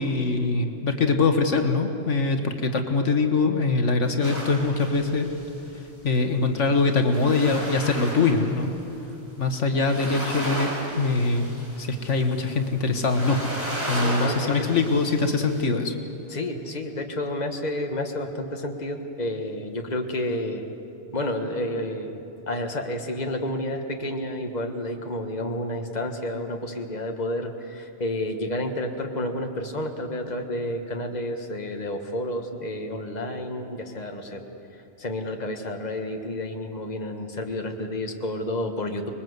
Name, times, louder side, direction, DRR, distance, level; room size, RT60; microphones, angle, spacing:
voice 1, 0.0-5.3 6.0-8.7 9.4-10.7 11.0-11.5 11.8-13.4 13.9-16.0, left 3 dB, 80° left, 5 dB, 1.8 m, -23 dB
sound 1, 4.2-5.7 6.6-8.8 9.1-9.2 9.8-15.6, right 1 dB, 10° right, 6.7 m, -35 dB
voice 2, 13.9-14.7 16.3-20.6 21.1-22.2 22.5-34.4 35.0-39.1, left 1 dB, 35° left, 4 dB, 1.7 m, -30 dB
26.5 x 21.0 x 8.0 m, 2.8 s
omnidirectional pair, 1.2 m